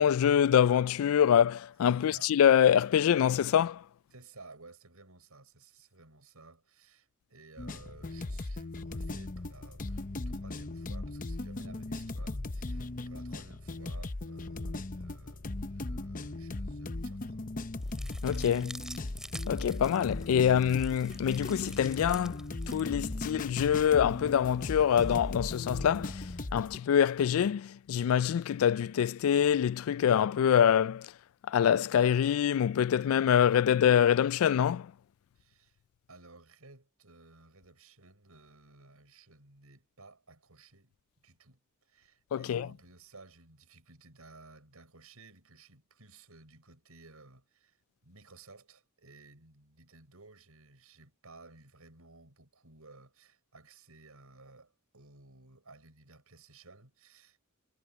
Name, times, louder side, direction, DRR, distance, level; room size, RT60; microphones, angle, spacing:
voice 1, 0.0-3.8 18.2-18.8 19.5-31.1 31.5-34.9 42.3-42.7, left 9 dB, 70° left, 0.3 m, -25 dB
voice 2, 1.9-2.3 4.1-17.4 35.4-35.8 36.1-40.9 41.2-57.4, right 3 dB, 85° right, 5.6 m, -56 dB
sound 1, 7.6-26.8, left 2 dB, 40° left, 0.8 m, -38 dB
sound 2, 17.8-26.4, right 1 dB, 5° right, 2.6 m, -50 dB
head